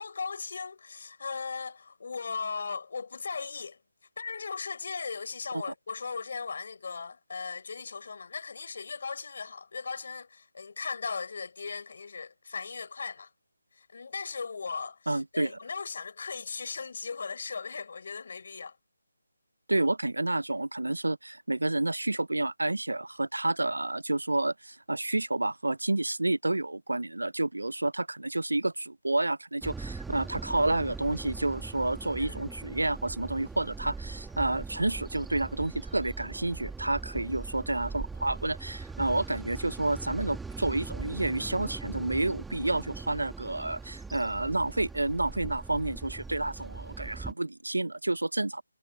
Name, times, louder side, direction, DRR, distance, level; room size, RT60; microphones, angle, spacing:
voice 1, 0.0-3.8 4.2-13.3 13.7-18.8 32.2-32.5, left 5 dB, 50° left, 5.0 m, -37 dB
voice 2, 15.1-15.5 19.7-48.6, right 2 dB, 85° right, 0.6 m, -30 dB
sound 1, 29.6-47.3, right 4 dB, 5° right, 2.5 m, -41 dB
figure-of-eight pair, 155°, 0 cm